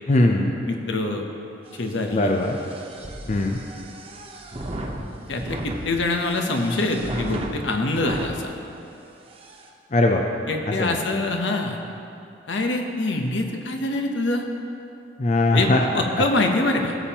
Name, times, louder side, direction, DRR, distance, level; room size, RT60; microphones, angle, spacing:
voice 1, 0.1-0.5 2.1-2.6 3.3-3.6 9.9-10.2 10.7-11.0 15.2-15.8, left 2 dB, 40° left, 1 dB, 0.5 m, -20 dB
voice 2, 0.7-1.2 1.7-2.4 5.3-8.5 10.5-11.8 12.5-14.4 15.5-17.0, left 2 dB, 70° left, 3 dB, 0.9 m, -25 dB
sound 1, 1.7-8.3 8.9-9.0 9.2-9.7, right 1 dB, 30° right, 0.8 m, -36 dB
16.0 x 7.2 x 2.9 m, 2.7 s
head